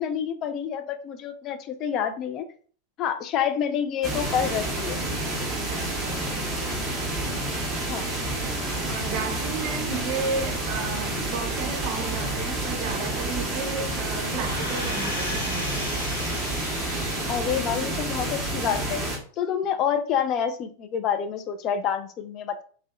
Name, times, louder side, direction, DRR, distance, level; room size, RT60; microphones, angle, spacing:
voice 1, 0.0-2.5 3.0-5.0 7.9-8.1 17.3-19.0 19.4-22.6, left 8 dB, 35° left, 0.3 m, -28 dB
sound 1, 4.0-19.2, right 1 dB, 15° right, 0.8 m, -29 dB
voice 2, 5.7-6.6 8.8-15.7, right 5 dB, 45° right, 0.5 m, -33 dB
sound 2, 14.3-17.7 18.2-18.3, left 1 dB, 80° left, 0.7 m, -35 dB
2.6 x 2.1 x 2.3 m
figure-of-eight pair, 90°, 0 cm